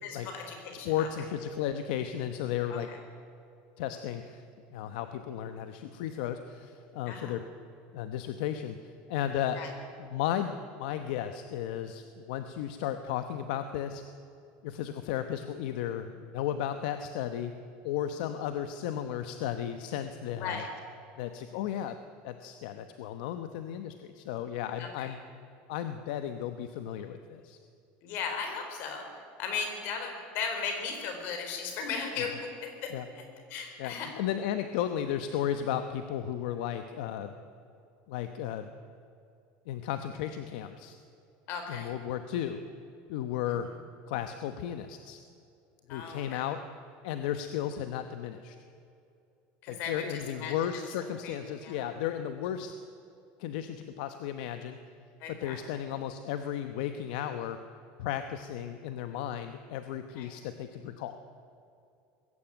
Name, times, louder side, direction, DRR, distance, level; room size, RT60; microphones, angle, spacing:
voice 1, 0.0-1.1 2.9-3.0 7.1-7.4 9.6-9.7 20.4-20.7 24.8-25.1 28.0-29.1 29.4-33.2 33.5-34.1 41.5-41.9 45.9-46.4 49.6-50.0 50.3-50.5 51.2-51.4 51.6-51.9 55.2-55.6 60.2-60.3, left 5 dB, 45° left, 4 dB, 4.3 m, -36 dB
voice 2, 0.8-2.9 3.8-4.4 4.7-7.4 7.9-9.6 10.0-14.0 14.6-17.5 17.8-20.6 21.2-22.0 22.2-25.2 25.7-27.6 32.9-33.1 33.8-37.4 38.1-38.7 39.7-41.0 41.7-42.6 43.1-43.7 44.1-45.2 45.9-46.6 47.0-48.6 49.7-52.8 53.4-54.8 55.3-57.6 58.0-61.2, left 10 dB, 65° left, 9 dB, 1.0 m, -34 dB
21.0 x 16.0 x 9.1 m, 2.6 s
cardioid pair, 175°, 5 cm